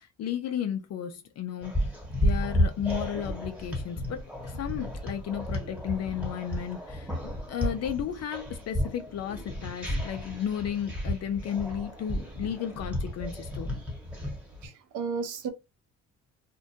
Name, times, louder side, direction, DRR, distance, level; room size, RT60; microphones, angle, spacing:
voice 1, 0.0-1.9 2.2-7.1 7.5-13.7, left 9 dB, 55° left, 0.5 m, -33 dB
sound 1, 1.6-14.7, equal, 5° right, 1.2 m, -32 dB
voice 2, 14.6-15.5, right 5 dB, 80° right, 0.7 m, -33 dB
2.6 x 2.1 x 2.6 m
cardioid pair, 90°, 30 cm